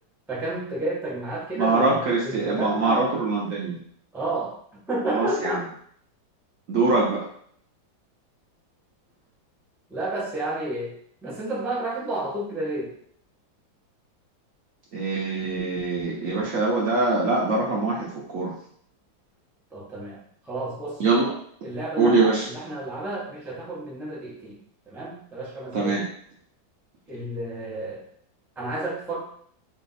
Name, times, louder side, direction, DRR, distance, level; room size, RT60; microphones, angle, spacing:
voice 1, 0.3-3.1 4.1-4.6 4.9-5.6 9.9-12.9 19.7-21.0 21.6-24.6 24.9-26.0 27.1-28.1 28.6-29.3, right 2 dB, ahead, -6 dB, 0.4 m, -31 dB
voice 2, 1.6-3.8 5.1-5.6 6.7-7.2 14.9-18.1 18.3-18.5 21.0-21.3 22.0-22.4 25.7-26.0, right 3 dB, 55° right, -4 dB, 1.0 m, -23 dB
3.3 x 2.9 x 4.1 m, 0.62 s
omnidirectional pair, 2.1 m